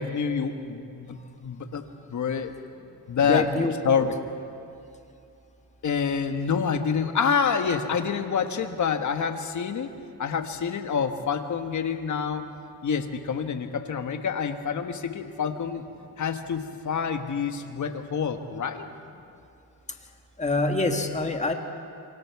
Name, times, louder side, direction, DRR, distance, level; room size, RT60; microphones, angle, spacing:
voice 1, 0.0-1.8 2.1-2.5 3.1-3.5 3.8-4.1 5.8-9.9 10.2-12.5 12.8-15.9 16.2-18.9, left 6 dB, 40° left, 7 dB, 1.4 m, -27 dB
voice 2, 3.2-3.7 20.4-21.5, left 3 dB, 15° left, 5 dB, 1.5 m, -25 dB
26.5 x 24.5 x 4.7 m, 2.6 s
cardioid pair, 140°, 43 cm